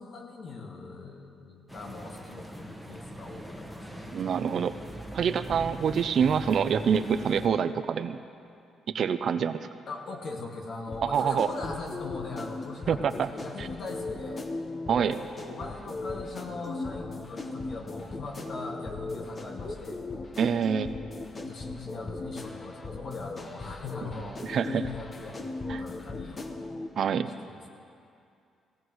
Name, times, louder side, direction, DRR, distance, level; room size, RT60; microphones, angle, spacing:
voice 1, 0.0-4.1 9.9-14.5 15.0-20.0 21.3-26.5 27.4-27.7, left 3 dB, 55° left, 1 dB, 1.9 m, -41 dB
sound 1, 1.7-7.5, right 1 dB, ahead, 1.3 m, -41 dB
voice 2, 4.1-4.8 5.1-8.2 8.9-9.7 11.0-11.5 12.9-13.3 13.6-13.7 14.9-15.2 20.4-20.9 24.0-24.1 24.4-24.8 25.7-25.8 27.0-27.3, right 7 dB, 60° right, 11 dB, 0.5 m, -26 dB
sound 2, 10.9-26.9, left 2 dB, 35° left, 1.1 m, -38 dB
17.5 x 17.0 x 3.1 m, 2.5 s
cardioid pair, 90°, 0 cm